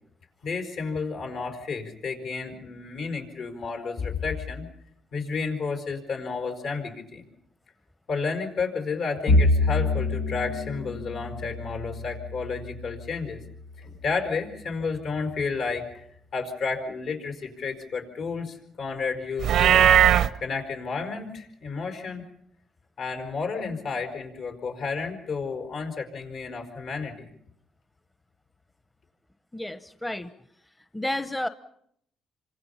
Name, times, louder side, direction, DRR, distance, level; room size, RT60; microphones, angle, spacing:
voice 1, 0.4-4.7 5.1-7.2 8.1-13.4 13.8-16.1 16.3-19.9 20.4-22.2 23.0-27.3, left 4 dB, 70° left, 4 dB, 4.9 m, -31 dB
Bowed string instrument, 9.3-13.7, left 2 dB, 85° left, 1.3 m, -26 dB
Livestock farm animals working animals, 19.4-20.3, right 10 dB, 75° right, 0.8 m, -17 dB
voice 2, 29.5-30.3 30.9-31.5, left 1 dB, 10° left, 10 dB, 1.0 m, -31 dB
27.5 x 25.5 x 5.7 m, 0.72 s
cardioid pair, 90°, 0 cm